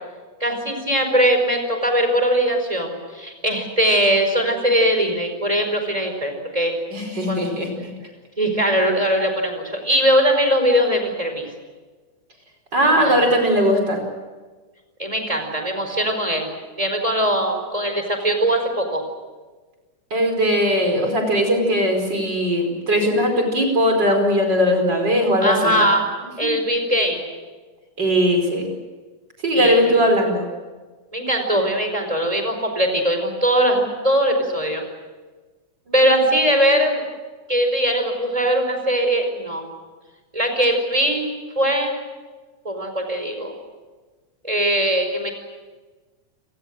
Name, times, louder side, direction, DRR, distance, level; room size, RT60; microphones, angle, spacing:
voice 1, 0.4-6.7 7.3-7.5 8.4-11.5 13.0-13.3 15.0-16.5 16.8-19.0 25.4-26.0 26.4-27.2 29.5-29.8 31.1-34.8 35.9-37.0 37.5-39.6 40.3-41.3 41.5-41.9 42.6-43.5 44.4-45.3, equal, 10° right, 5 dB, 4.6 m, -20 dB
voice 2, 6.9-7.7 12.7-14.0 20.1-25.9 26.4-26.5 28.0-28.7 29.4-30.5, equal, 30° right, 4 dB, 5.5 m, -19 dB
30.0 x 20.0 x 7.7 m, 1.3 s
omnidirectional pair, 3.7 m